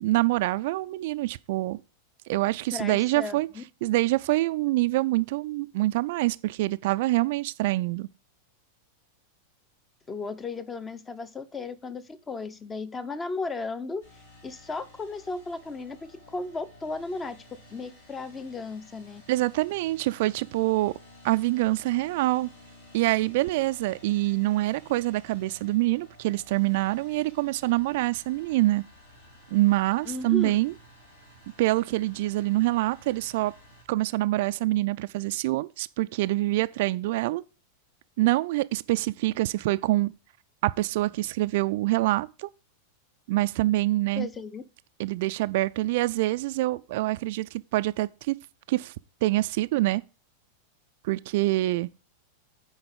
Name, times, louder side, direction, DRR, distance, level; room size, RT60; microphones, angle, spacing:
voice 1, 0.0-1.8 2.3-3.5 3.8-8.1 19.3-20.9 21.2-22.5 22.9-28.8 29.5-30.7 31.6-33.5 33.9-37.4 38.2-40.1 40.6-42.5 43.3-44.3 45.0-48.4 48.7-48.9 49.2-50.0 51.0-51.9, right 18 dB, 50° right, 0.3 m, -25 dB
voice 2, 2.7-3.6 10.1-14.0 14.4-17.4 17.7-19.2 30.1-30.5 44.2-44.6, left 3 dB, 20° left, 0.7 m, -35 dB
sound 1, 14.0-33.8, left 1 dB, 70° left, 3.8 m, -53 dB
9.4 x 4.8 x 5.0 m
figure-of-eight pair, 90°, 0 cm